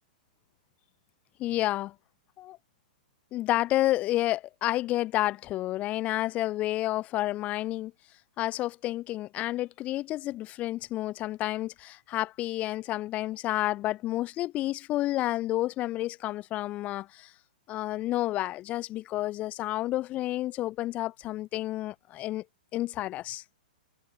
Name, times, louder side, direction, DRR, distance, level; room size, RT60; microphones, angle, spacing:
voice 1, 1.4-1.9 2.4-2.6 3.3-7.9 8.4-17.3 17.7-22.4 22.7-23.4, left 15 dB, 30° left, 2.8 m, -30 dB
figure-of-eight pair, 110°, 5 cm